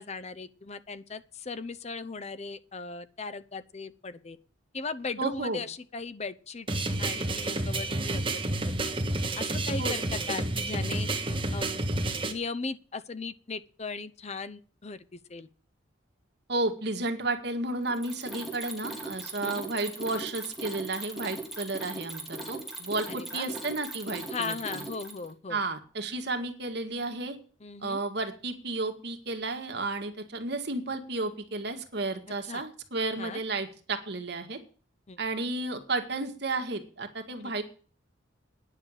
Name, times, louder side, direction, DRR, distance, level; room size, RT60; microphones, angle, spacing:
voice 1, 0.0-4.4 4.7-8.2 8.7-8.9 9.4-11.1 11.5-11.8 12.3-15.5 19.4-19.6 23.1-23.5 24.3-25.6 27.6-28.0 32.5-32.6 33.2-33.4 35.1-35.2, left 4 dB, 35° left, 14 dB, 0.7 m, -38 dB
voice 2, 5.2-5.6 9.8-9.9 16.5-24.8 25.5-27.4 27.8-34.6 35.2-37.6, right 2 dB, 60° right, 5 dB, 1.9 m, -32 dB
sound 1, 6.7-12.3, right 2 dB, 30° right, 1.5 m, -30 dB
Mechanisms, 17.9-25.3, right 2 dB, ahead, 2.7 m, -39 dB
10.0 x 6.7 x 8.9 m, 0.39 s
head